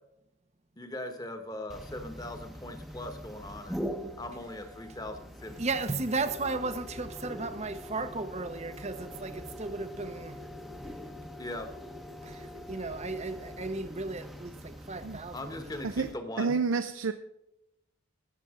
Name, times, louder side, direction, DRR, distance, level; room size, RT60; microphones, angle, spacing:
voice 1, 0.8-3.9 4.2-5.6 11.4-11.7 15.3-16.6, left 1 dB, 15° left, 1.2 m, -40 dB
sound 1, 1.7-16.1, equal, ahead, 0.9 m, -43 dB
voice 2, 5.6-10.4 12.2-15.8, right 3 dB, 30° right, 0.8 m, -35 dB
voice 3, 16.4-17.1, right 4 dB, 65° right, 0.5 m, -29 dB
19.5 x 6.9 x 3.7 m
head